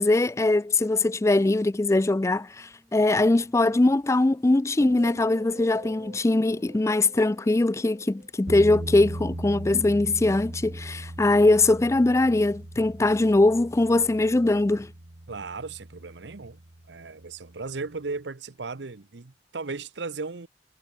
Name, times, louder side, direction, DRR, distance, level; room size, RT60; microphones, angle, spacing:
voice 1, 0.0-14.9, left 2 dB, 15° left, 0.4 m, -22 dB
sound 1, 2.3-10.3, equal, 10° right, 7.8 m, -63 dB
sound 2, 4.8-9.2 9.5-9.9, right 1 dB, 45° right, 3.4 m, -47 dB
sound 3, 8.5-17.4, right 1 dB, 65° right, 1.9 m, -39 dB
voice 2, 15.3-16.6 16.9-20.5, right 4 dB, 90° right, 0.9 m, -36 dB
head